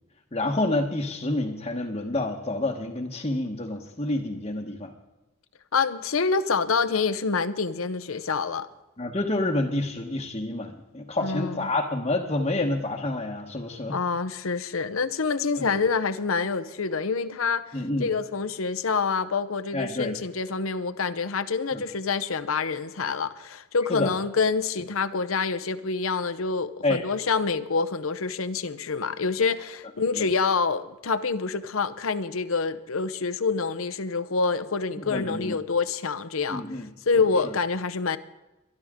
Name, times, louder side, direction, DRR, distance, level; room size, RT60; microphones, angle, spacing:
voice 1, 0.3-4.9 9.0-14.0 15.6-15.8 17.7-18.1 19.7-20.2 21.7-21.8 23.9-24.1 26.8-27.0 30.1-30.3 35.0-35.5 36.5-36.9 37.1-37.5, left 2 dB, 30° left, -1 dB, 1.1 m, -28 dB
voice 2, 5.7-8.7 11.2-11.7 13.9-36.6 37.1-38.2, left 4 dB, 80° left, 11 dB, 0.8 m, -27 dB
22.5 x 12.0 x 3.7 m, 1.0 s
head